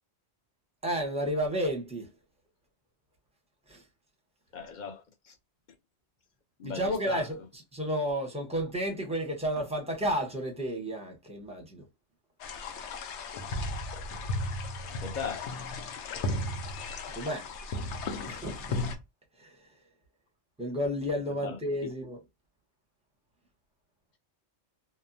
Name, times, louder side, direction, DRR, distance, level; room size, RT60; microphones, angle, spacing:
voice 1, 0.8-2.1 3.7-3.8 6.6-7.4 7.7-11.8 17.1-17.5 18.3-18.8 19.4-19.5 20.6-22.2, equal, 5° right, 0.7 m, -31 dB
voice 2, 4.5-5.3 6.6-7.3 14.9-15.6 21.4-21.9, left 6 dB, 50° left, 0.7 m, -39 dB
sound 1, 12.4-19.0, left 2 dB, 85° left, 0.9 m, -35 dB
2.8 x 2.1 x 2.5 m
omnidirectional pair, 1.1 m